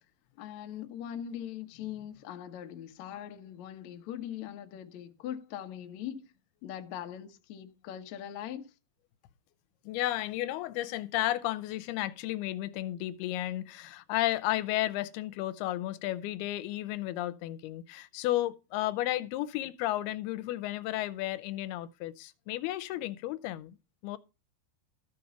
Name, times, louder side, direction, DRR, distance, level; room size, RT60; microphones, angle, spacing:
voice 1, 0.4-6.3 6.6-8.7, left 10 dB, 65° left, 1.9 m, -41 dB
voice 2, 9.8-23.8 24.0-24.2, left 15 dB, 85° left, 2.7 m, -33 dB
14.0 x 5.3 x 6.9 m
omnidirectional pair, 4.5 m